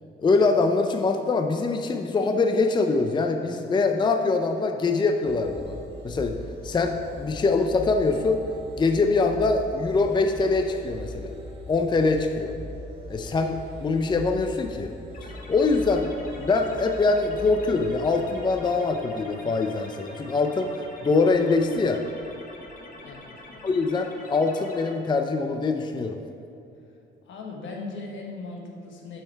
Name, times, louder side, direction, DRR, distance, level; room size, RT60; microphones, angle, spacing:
voice 1, 0.2-5.8 6.0-6.3 6.6-8.4 8.8-11.3 11.7-12.5 13.1-14.9 15.2-22.0 23.6-26.2, left 3 dB, 25° left, 5 dB, 0.5 m, -23 dB
sound 1, 5.2-18.6, equal, 30° right, 1.5 m, -40 dB
sound 2, 15.1-24.9, left 2 dB, 45° left, 1.3 m, -46 dB
voice 2, 23.0-23.7 27.2-29.2, left 3 dB, 75° left, 0 dB, 1.3 m, -38 dB
7.4 x 5.7 x 4.6 m, 2.7 s
cardioid pair, 90°, 20 cm